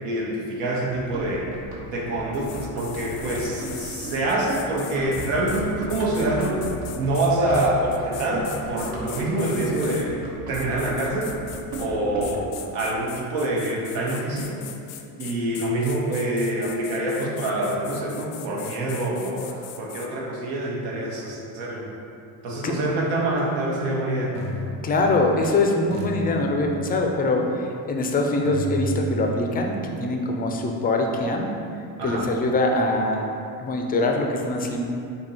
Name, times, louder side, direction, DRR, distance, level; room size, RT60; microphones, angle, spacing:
voice 1, 0.0-1.5 1.9-6.6 7.0-11.4 11.8-14.6 15.2-21.9 22.4-24.4 32.0-32.3, right 1 dB, 80° right, -3 dB, 1.0 m, -26 dB
Run, 0.9-12.6, right 1 dB, 60° right, 1.2 m, -36 dB
sound 1, 2.3-10.1 10.5-11.9 12.2-20.1, left 10 dB, 75° left, 0.5 m, -41 dB
sound 2, 23.3-23.4 24.4-25.5 25.9-27.2 28.5-32.4, right 1 dB, 45° right, 0.8 m, -35 dB
voice 2, 24.8-31.5 32.0-33.2 33.6-34.8, left 2 dB, 20° left, 2 dB, 0.4 m, -23 dB
4.4 x 2.8 x 4.1 m, 2.5 s
cardioid pair, 110°, 41 cm